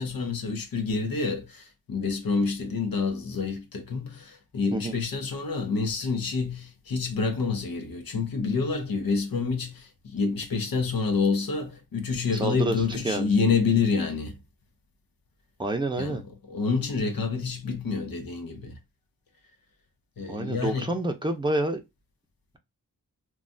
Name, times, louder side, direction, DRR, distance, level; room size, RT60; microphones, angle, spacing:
voice 1, 0.0-14.4 16.0-16.2 16.5-18.8 20.2-20.9, left 4 dB, 65° left, 0.9 m, -28 dB
voice 2, 12.3-13.3 15.6-16.2 20.3-21.8, right 2 dB, 15° right, 0.6 m, -28 dB
3.2 x 2.3 x 2.5 m
wide cardioid pair, 110°, 37 cm